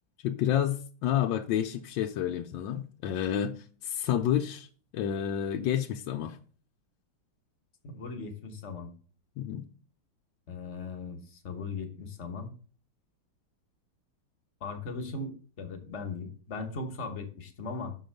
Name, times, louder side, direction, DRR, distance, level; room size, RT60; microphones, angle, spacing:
voice 1, 0.2-4.7 4.9-6.4 9.4-9.7, left 10 dB, 70° left, 1.2 m, -29 dB
voice 2, 7.8-8.9 10.5-12.5 14.6-18.0, left 4 dB, 40° left, 1.1 m, -38 dB
6.4 x 5.3 x 6.5 m
omnidirectional pair, 2.4 m